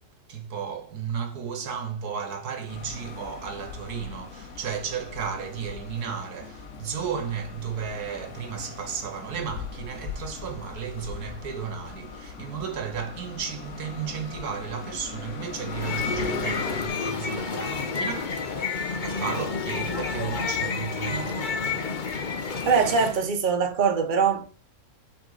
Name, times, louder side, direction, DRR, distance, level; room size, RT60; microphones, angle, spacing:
voice 1, 0.3-21.7, right 7 dB, 85° right, 1.6 m, -34 dB
sound 1, 2.7-16.9, left 6 dB, 55° left, 1.2 m, -40 dB
sound 2, 15.6-23.2, left 5 dB, 40° left, 0.8 m, -30 dB
voice 2, 22.6-24.4, right 5 dB, 35° right, 1.1 m, -22 dB
7.7 x 3.8 x 4.0 m
omnidirectional pair, 1.6 m